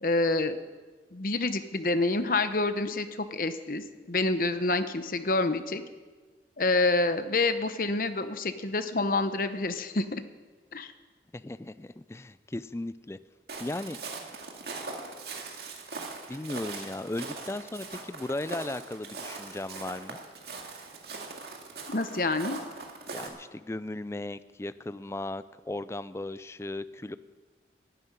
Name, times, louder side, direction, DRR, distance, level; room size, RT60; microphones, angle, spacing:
voice 1, 0.0-0.6 1.1-5.8 6.6-10.2 10.7-10.9 21.9-22.6, left 2 dB, 50° left, 10 dB, 1.0 m, -27 dB
voice 2, 11.3-13.2 13.6-14.0 16.3-20.2 23.1-27.2, left 2 dB, 15° left, 14 dB, 0.4 m, -36 dB
Walk footsteps, 13.5-23.3, right 3 dB, 65° right, 2.1 m, -41 dB
11.5 x 11.0 x 9.6 m, 1.4 s
head